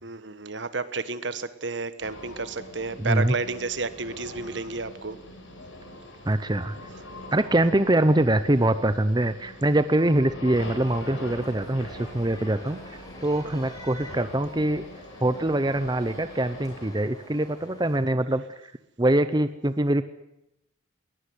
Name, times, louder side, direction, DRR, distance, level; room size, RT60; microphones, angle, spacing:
voice 1, 0.0-5.2, right 3 dB, 60° right, 13 dB, 1.5 m, -31 dB
sound 1, 2.0-16.9, left 1 dB, 85° left, 7.1 m, -43 dB
voice 2, 3.0-3.3 6.2-6.8 7.3-14.9 15.2-18.7 19.0-20.0, right 1 dB, 20° right, 12 dB, 0.8 m, -24 dB
sound 2, 10.5-18.0, left 1 dB, 20° left, 6.1 m, -47 dB
21.5 x 18.5 x 9.5 m, 0.86 s
head